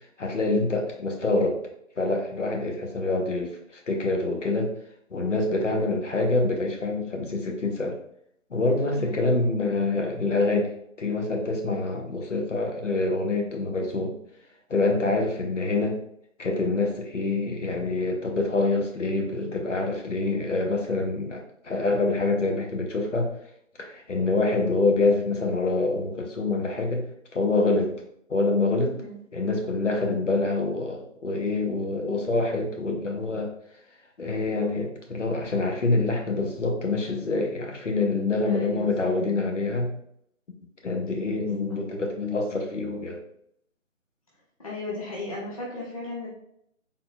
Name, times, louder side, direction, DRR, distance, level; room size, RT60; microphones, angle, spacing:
voice 1, 0.2-1.6 2.0-3.6 3.9-4.7 5.1-8.0 8.5-14.1 14.7-16.0 16.4-23.3 23.8-27.0 27.3-27.9 28.3-29.0 29.3-33.5 34.2-39.9 40.8-43.2, left 2 dB, 65° left, 1 dB, 1.0 m, -26 dB
voice 2, 8.9-9.4 29.0-29.2 38.5-39.1 41.7-41.8 44.6-46.3, left 2 dB, 25° left, -4 dB, 0.6 m, -36 dB
4.0 x 3.7 x 2.3 m, 0.72 s
figure-of-eight pair, 150°, 40 cm